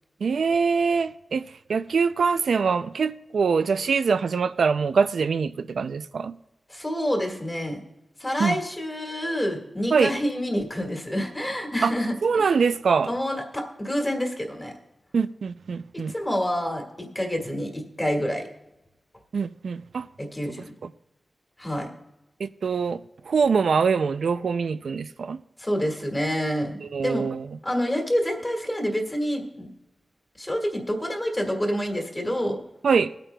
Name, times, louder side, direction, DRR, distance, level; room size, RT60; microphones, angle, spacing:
voice 1, 0.2-1.4 1.7-6.3 8.4-8.6 9.9-10.1 11.8-11.9 12.2-13.1 15.1-16.1 19.3-20.1 22.4-23.0 23.3-25.4 26.9-27.5 32.8-33.1, right 5 dB, 90° right, 0.3 m, -23 dB
voice 2, 6.7-7.8 8.2-12.5 13.1-14.7 16.1-18.4 20.2-20.7 21.6-21.9 25.6-27.3 27.6-29.7 30.4-32.6, equal, 15° left, 1.8 m, -27 dB
23.0 x 8.9 x 2.2 m
wide cardioid pair, 110°, 0 cm